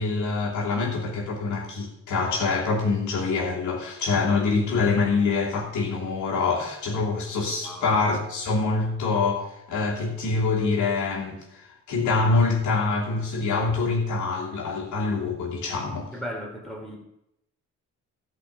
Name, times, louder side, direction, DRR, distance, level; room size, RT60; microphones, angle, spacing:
voice 1, 0.0-16.1, left 4 dB, 75° left, -2 dB, 3.0 m, -25 dB
voice 2, 7.6-7.9 16.1-17.0, equal, ahead, -2 dB, 3.7 m, -36 dB
13.0 x 5.5 x 8.3 m, 0.81 s
cardioid pair, 90°, 30 cm